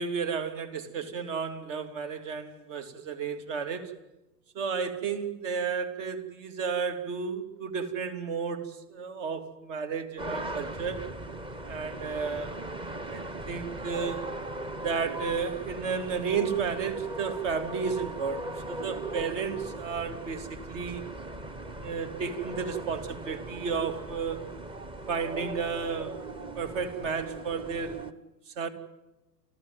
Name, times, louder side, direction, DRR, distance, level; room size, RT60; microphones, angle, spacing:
voice 1, 0.0-3.9 4.5-11.0 11.7-12.6 13.1-14.3 14.8-21.0 21.8-24.4 25.1-26.2 26.5-28.0 28.6-28.7, right 6 dB, 50° right, 8 dB, 3.0 m, -32 dB
sound 1, 10.2-28.1, right 1 dB, 10° right, 1.0 m, -39 dB
30.0 x 14.0 x 9.4 m, 1.0 s
figure-of-eight pair, 100°, 48 cm